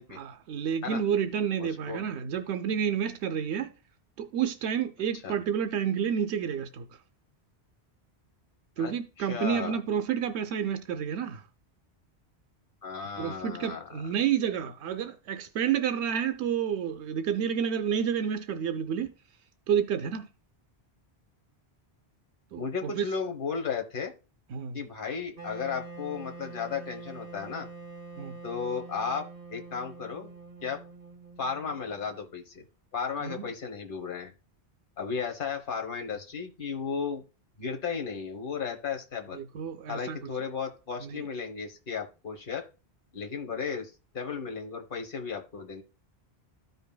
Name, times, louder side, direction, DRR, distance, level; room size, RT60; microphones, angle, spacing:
voice 1, 0.2-3.7 4.2-6.9 8.8-11.4 13.2-19.1 19.7-20.3 22.5-23.1 24.5-24.8 28.2-28.4 33.2-33.5 39.3-40.2 41.0-41.2, right 8 dB, 85° right, 0.9 m, -30 dB
voice 2, 1.6-2.1 5.2-5.4 8.8-9.8 12.8-14.0 22.6-24.1 24.7-27.7 28.4-29.2 29.5-30.3 30.6-30.8 31.4-32.6 32.9-34.3 35.0-37.2 37.6-39.4 39.9-42.6 43.1-45.8, left 6 dB, 55° left, 1.2 m, -34 dB
Wind instrument woodwind instrument, 25.4-32.3, right 3 dB, 55° right, 1.6 m, -45 dB
13.5 x 5.4 x 2.2 m
omnidirectional pair, 1.1 m